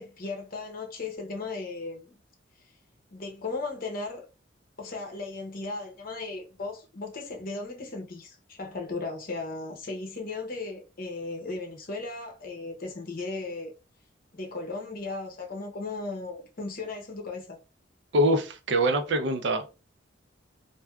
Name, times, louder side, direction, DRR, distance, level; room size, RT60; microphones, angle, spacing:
voice 1, 0.0-2.2 3.1-4.2 4.8-13.7 14.3-17.6, left 3 dB, 50° left, 0.8 m, -36 dB
voice 2, 18.1-19.7, right 1 dB, 65° right, 0.5 m, -24 dB
3.3 x 2.6 x 2.3 m
head